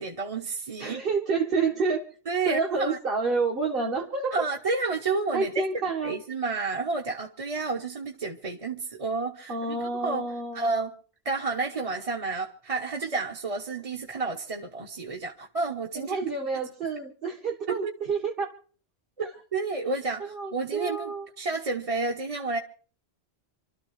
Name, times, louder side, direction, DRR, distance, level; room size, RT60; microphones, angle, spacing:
voice 1, 0.0-1.0 2.3-3.0 4.3-5.6 6.0-10.2 10.5-10.9 11.2-16.2 17.7-17.9 19.2-21.1 21.4-22.6, right 3 dB, 35° right, 1.0 m, -30 dB
voice 2, 0.8-2.1 2.5-4.5 5.3-6.2 9.5-10.7 15.9-18.5 19.2-19.3 20.2-21.3, right 4 dB, 55° right, 1.7 m, -29 dB
27.0 x 13.0 x 3.2 m
omnidirectional pair, 1.1 m